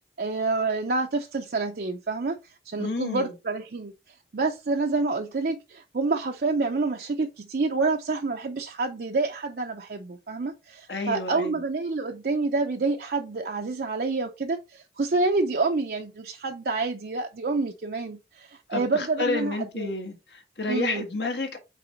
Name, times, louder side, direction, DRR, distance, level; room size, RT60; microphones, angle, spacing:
voice 1, 0.2-2.4 2.7-3.9 4.3-19.9 20.7-21.0, right 3 dB, 55° right, 0.5 m, -28 dB
voice 2, 2.8-3.3 10.9-11.6 18.7-21.6, left 3 dB, 70° left, 1.5 m, -30 dB
5.7 x 4.2 x 3.9 m
head